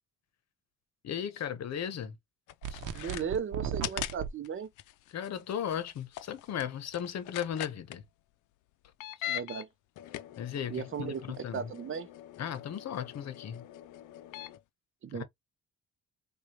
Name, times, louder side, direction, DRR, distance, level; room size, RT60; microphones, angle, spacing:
voice 1, 1.0-2.2 2.7-2.8 5.1-8.0 10.4-11.7 12.4-13.6 15.1-15.2, left 9 dB, 60° left, 0.9 m, -36 dB
sound 1, 2.5-3.2 3.8-4.1 4.4-4.5 4.8-8.0 8.8-9.6 10.0-14.6, left 13 dB, 80° left, 0.5 m, -42 dB
sound 2, 2.6-4.3, right 8 dB, 85° right, 0.8 m, -36 dB
voice 2, 2.9-4.7 9.3-9.7 10.7-11.2 11.5-12.1 15.0-15.2, right 7 dB, 45° right, 0.7 m, -36 dB
4.7 x 2.4 x 2.8 m
cardioid pair, 90°, 30 cm